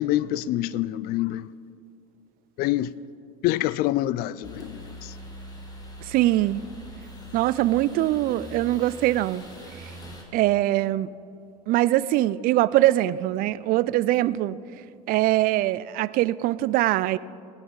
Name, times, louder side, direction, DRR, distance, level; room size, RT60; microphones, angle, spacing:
voice 1, 0.0-1.5 2.6-2.9 3.4-5.1, left 14 dB, 50° left, 0.4 m, -26 dB
sound 1, 4.4-10.2, equal, 20° left, 2.4 m, -42 dB
voice 2, 6.1-6.6 7.3-9.4 10.3-11.1 11.7-14.6 15.1-17.2, right 15 dB, 45° right, 0.4 m, -22 dB
19.0 x 9.2 x 4.0 m
hypercardioid pair, 80°, 20 cm